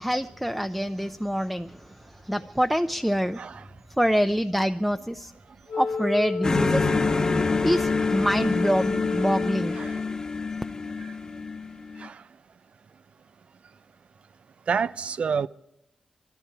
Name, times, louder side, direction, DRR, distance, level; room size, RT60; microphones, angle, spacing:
voice 1, 0.0-3.5 4.0-5.3 5.7-6.9 7.6-9.8, equal, ahead, 0.6 m, -25 dB
Wind instrument woodwind instrument, 5.7-10.1, left 4 dB, 85° left, 1.9 m, -30 dB
sound 1, 6.4-12.1, left 4 dB, 30° left, 1.1 m, -27 dB
voice 2, 14.7-15.5, right 6 dB, 60° right, 0.5 m, -28 dB
22.0 x 14.0 x 4.8 m
wide cardioid pair, 95°, 2 cm